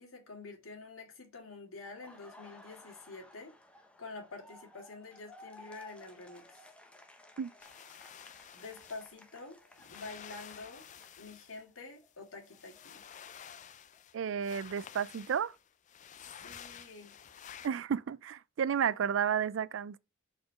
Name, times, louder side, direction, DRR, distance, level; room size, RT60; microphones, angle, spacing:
voice 1, 0.0-3.5 4.0-6.7 8.5-10.8 11.2-13.0 16.4-17.2, left 3 dB, 85° left, 2.2 m, -48 dB
Laughter, 1.8-11.7 12.0-14.0, left 2 dB, 5° left, 0.8 m, -57 dB
sound 1, 7.6-9.2 9.7-11.6 12.0-14.2 14.4-17.7, left 8 dB, 35° left, 0.4 m, -51 dB
voice 2, 14.1-15.5 17.6-20.0, right 8 dB, 65° right, 0.3 m, -32 dB
4.7 x 4.3 x 5.1 m
head